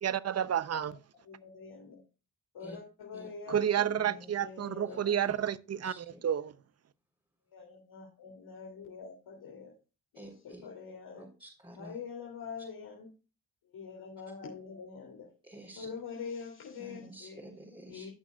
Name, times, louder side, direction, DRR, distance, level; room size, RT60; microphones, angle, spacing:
voice 1, 0.0-1.0 3.5-6.5, right 9 dB, 40° right, 0.8 m, -30 dB
voice 2, 1.2-2.0 2.5-5.3 7.5-9.7 10.1-11.3 11.8-13.1 13.6-15.3 15.8-17.4 17.9-18.1, left 5 dB, 75° left, 3.1 m, -45 dB
voice 3, 4.0-4.3 4.7-5.5 5.8-6.2 10.1-10.7 11.2-12.0 15.4-15.9 16.8-18.1, right 1 dB, 15° right, 4.0 m, -50 dB
16.0 x 6.1 x 2.4 m
supercardioid pair, 60°, 39 cm